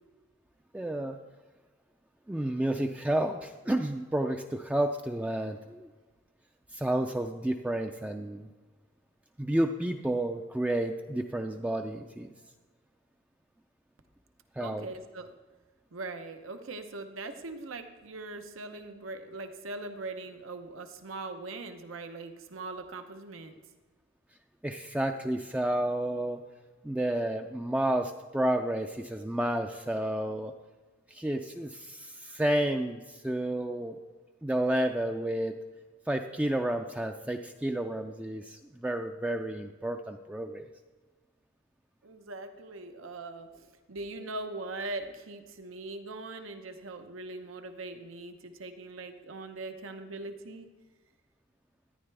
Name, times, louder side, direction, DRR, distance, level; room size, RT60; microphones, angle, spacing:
voice 1, 0.7-1.2 2.3-5.9 6.7-8.5 9.4-12.3 14.6-14.9 24.6-26.4 26.8-30.5 31.1-34.0 34.4-35.6 36.1-40.7, right 1 dB, 5° right, 4 dB, 0.3 m, -31 dB
voice 2, 14.6-15.3 15.9-23.6 42.0-50.7, right 2 dB, 90° right, 7 dB, 0.8 m, -41 dB
13.0 x 10.0 x 3.4 m, 1.3 s
head